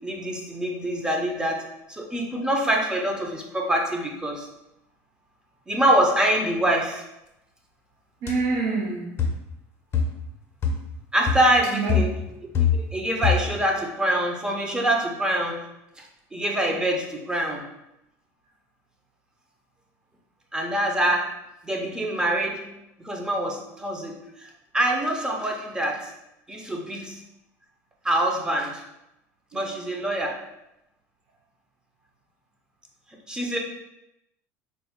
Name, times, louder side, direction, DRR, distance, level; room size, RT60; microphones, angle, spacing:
voice 1, 0.0-1.6 1.9-4.5 5.7-7.0 11.1-12.2 12.7-15.6 16.0-17.6 20.5-21.3 21.6-22.7 23.0-26.1 26.5-27.2 28.0-28.8 29.5-30.4 33.3-33.6, right 1 dB, 10° right, 1 dB, 0.6 m, -25 dB
voice 2, 8.2-9.2 11.7-12.0 29.5-29.7, right 4 dB, 65° right, -2 dB, 0.7 m, -27 dB
sound 1, 8.3-8.4 9.2-9.5 9.9-10.3 10.6-10.9 11.3-11.6 11.9-13.0 13.2-13.6, left 6 dB, 35° left, 0.6 m, -24 dB
4.1 x 2.2 x 3.5 m, 0.87 s
supercardioid pair, 125°, 7 cm